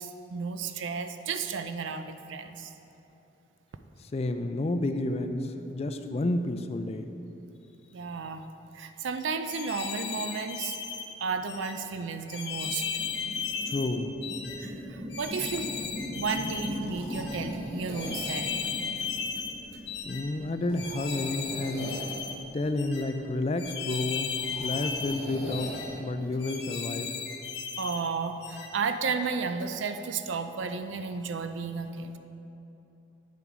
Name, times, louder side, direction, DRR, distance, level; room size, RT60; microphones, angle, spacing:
voice 1, 0.0-2.7 7.9-8.4 8.7-10.8 11.2-12.9 14.6-15.7 16.1-18.6 27.8-32.2, right 5 dB, 80° right, 8 dB, 0.4 m, -33 dB
voice 2, 4.1-7.1 13.7-14.1 20.1-22.0 22.5-27.1, left 2 dB, 35° left, 8 dB, 0.4 m, -30 dB
sound 1, 9.4-11.0 11.5-11.7 12.3-13.9 14.2-14.6 15.1-16.7 17.1-17.4 17.9-19.5 19.9-20.2 20.7-22.3 22.8-23.0 23.6-25.2 25.5-25.9 26.4-28.0 28.4-28.7, left 6 dB, 65° left, 1.0 m, -35 dB
sound 2, 11.5-21.3, equal, 20° right, 0.9 m, -40 dB
sound 3, 16.7-26.0, equal, 55° right, 2.2 m, -43 dB
8.7 x 7.0 x 4.9 m, 3.0 s
head